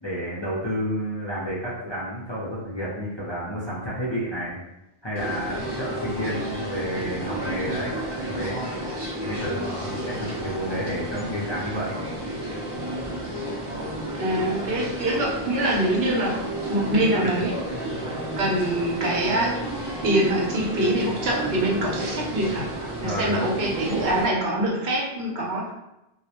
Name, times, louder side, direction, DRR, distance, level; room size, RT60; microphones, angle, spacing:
voice 1, 0.0-4.6 5.0-8.6 9.2-11.9 23.0-23.5, equal, 35° left, -8 dB, 0.5 m, -30 dB
sound 1, 5.2-24.3, right 1 dB, 35° right, 0.5 m, -31 dB
voice 2, 14.2-16.4 16.7-17.5 18.4-19.5 20.0-22.7 23.0-25.7, right 1 dB, 75° right, -3 dB, 0.9 m, -24 dB
2.2 x 2.0 x 2.7 m, 0.90 s
omnidirectional pair, 1.0 m